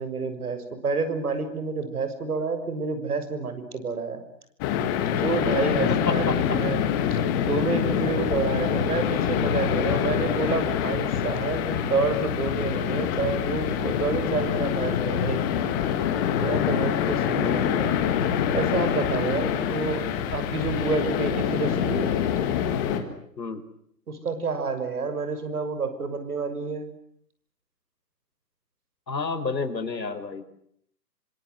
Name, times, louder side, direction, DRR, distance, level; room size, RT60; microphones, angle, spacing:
voice 1, 0.0-4.2 5.2-15.7 16.4-18.0 18.5-20.1 20.3-22.1 24.1-26.9, right 4 dB, 60° right, 10 dB, 6.5 m, -29 dB
sound 1, 4.6-23.0, left 9 dB, 15° left, 1.5 m, -25 dB
voice 2, 5.9-6.6 17.3-17.7 23.4-23.6 29.1-30.4, left 4 dB, 85° left, 9 dB, 5.2 m, -30 dB
27.5 x 26.0 x 7.9 m, 0.67 s
hypercardioid pair, 165°, 50 cm